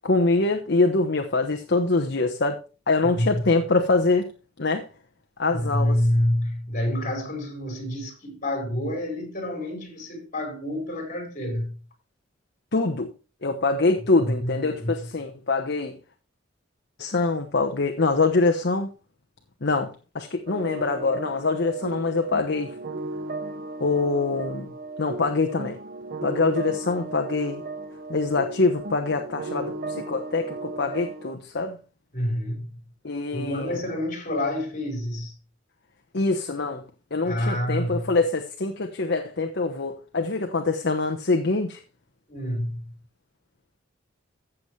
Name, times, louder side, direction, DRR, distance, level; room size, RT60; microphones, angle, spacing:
voice 1, 0.0-4.3 4.6-4.9 5.4-6.0 12.7-13.1 13.4-16.0 17.0-18.9 19.6-22.8 23.8-25.8 26.2-27.6 28.1-31.8 33.0-33.8 36.1-36.8 37.1-41.8, left 3 dB, 60° left, 1.0 m, -24 dB
voice 2, 3.0-3.4 5.5-11.8 14.2-15.1 32.1-32.8 33.3-35.4 37.2-38.1 42.3-43.0, left 1 dB, 40° left, 4.5 m, -28 dB
sound 1, 20.5-31.3, right 2 dB, 50° right, 1.0 m, -35 dB
15.0 x 7.2 x 3.3 m
head